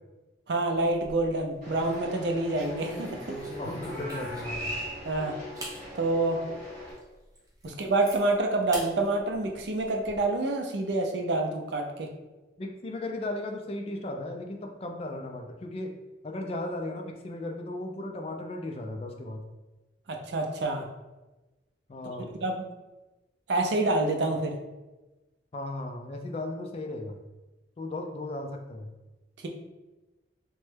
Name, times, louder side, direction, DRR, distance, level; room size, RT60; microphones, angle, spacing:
voice 1, 0.5-3.3 5.0-5.4 5.9-6.4 7.6-12.1 20.1-20.9 22.4-22.6 23.5-24.5, right 2 dB, 75° right, 3 dB, 0.5 m, -27 dB
sound 1, 0.7-1.4 1.8-2.0 2.5-4.6 5.1-5.2 5.6-5.8 6.3-6.4 6.9-7.0 7.4-8.2 8.7-8.9 9.3-10.2, right 1 dB, 20° right, 0.5 m, -41 dB
sound 2, 1.6-6.9, equal, 40° right, 1.3 m, -40 dB
voice 2, 3.4-4.7 7.6-7.8 12.6-15.9 16.2-19.4 21.9-22.3 25.5-27.2 27.8-28.9, left 2 dB, 35° left, 3 dB, 0.3 m, -36 dB
Meow, 3.7-4.5, equal, 60° left, 0.9 m, -42 dB
3.0 x 2.2 x 3.2 m, 1.1 s
head